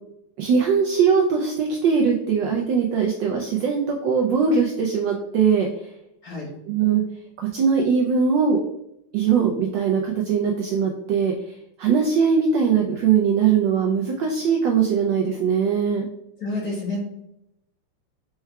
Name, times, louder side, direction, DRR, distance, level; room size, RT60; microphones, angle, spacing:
voice 1, 0.4-5.7 6.7-7.0 7.4-8.6 9.1-11.3 11.8-16.1, right 6 dB, 75° right, 1 dB, 1.0 m, -21 dB
voice 2, 16.4-17.0, left 2 dB, 50° left, -3 dB, 1.4 m, -29 dB
4.6 x 4.4 x 2.2 m, 0.81 s
omnidirectional pair, 2.4 m